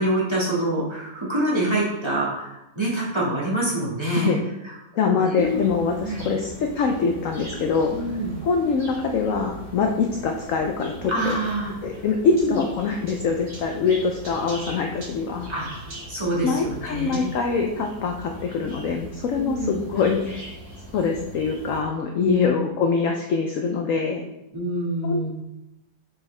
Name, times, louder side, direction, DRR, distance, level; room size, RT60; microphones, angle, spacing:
voice 1, 0.0-4.3 4.6-4.7 5.1-5.6 6.0-6.3 7.9-8.3 11.1-11.7 12.2-12.6 15.5-15.7 16.1-17.3 19.4-19.8 22.2-22.5 24.5-25.3, right 1 dB, 15° right, -8 dB, 1.7 m, -26 dB
voice 2, 5.0-7.9 8.4-11.4 11.8-15.5 16.4-20.6 20.9-24.2 25.0-25.3, left 5 dB, 70° left, 3 dB, 0.8 m, -24 dB
sound 1, 5.4-21.8, right 1 dB, 60° right, 2.5 m, -40 dB
7.0 x 4.6 x 3.3 m, 0.91 s
omnidirectional pair, 1.9 m